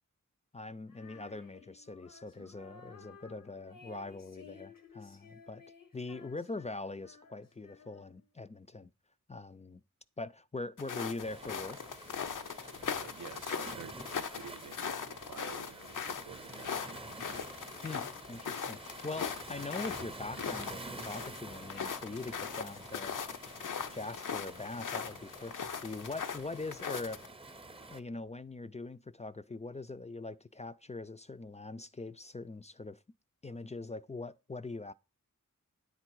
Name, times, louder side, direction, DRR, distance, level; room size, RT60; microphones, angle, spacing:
voice 1, 0.5-5.6 5.9-8.9 9.3-9.8 10.2-11.8 17.8-23.2 23.9-27.2 27.9-33.0 33.4-34.9, left 3 dB, 20° left, 0.3 m, -42 dB
Female singing, 0.9-8.3, left 4 dB, 90° left, 1.3 m, -56 dB
sound 1, 10.8-27.3, left 7 dB, 70° left, 0.6 m, -40 dB
Waves surf, 11.2-28.0, right 2 dB, 15° right, 0.6 m, -49 dB
voice 2, 12.9-17.5, right 9 dB, 65° right, 0.4 m, -51 dB
9.7 x 3.9 x 4.6 m
wide cardioid pair, 60°, 32 cm